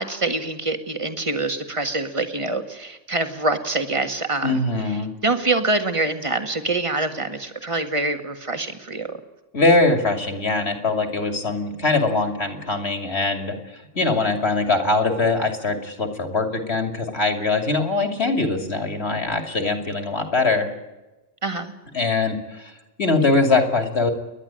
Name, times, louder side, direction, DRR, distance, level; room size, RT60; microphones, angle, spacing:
voice 1, 0.0-4.6 5.2-9.1 21.4-21.7, right 2 dB, 25° right, 7 dB, 1.7 m, -25 dB
voice 2, 4.4-5.1 9.5-13.5 13.9-20.7 21.9-22.7 23.0-24.1, left 3 dB, 55° left, 5 dB, 2.9 m, -22 dB
30.0 x 11.0 x 9.0 m, 1.1 s
omnidirectional pair, 1.3 m